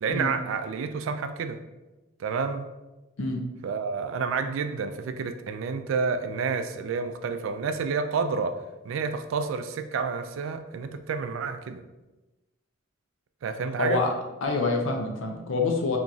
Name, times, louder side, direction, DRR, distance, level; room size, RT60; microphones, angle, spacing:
voice 1, 0.0-1.6 2.2-2.6 3.6-8.6 8.8-11.8 13.4-14.0, right 5 dB, 70° right, 9 dB, 0.3 m, -29 dB
voice 2, 13.8-14.1 14.4-16.0, left 3 dB, 70° left, 3 dB, 0.5 m, -26 dB
2.9 x 2.4 x 3.9 m, 1.1 s
head